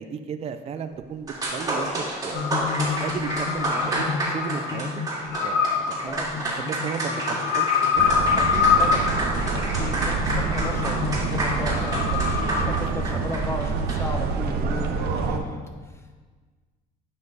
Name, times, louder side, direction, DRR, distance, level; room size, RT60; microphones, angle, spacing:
voice 1, 0.0-2.5 2.8-5.0 5.4-6.2 6.5-8.1 9.5-9.7, right 7 dB, 40° right, 8 dB, 0.5 m, -35 dB
sound 1, 1.3-14.2, right 1 dB, 20° right, 2.3 m, -29 dB
sound 2, 2.3-12.8, left 6 dB, 75° left, 1.0 m, -26 dB
sound 3, 8.0-15.4, right 5 dB, 70° right, 0.8 m, -27 dB
voice 2, 8.4-16.1, left 1 dB, 15° left, 4 dB, 0.9 m, -35 dB
9.0 x 5.5 x 3.9 m, 1.4 s
cardioid pair, 110°, 17 cm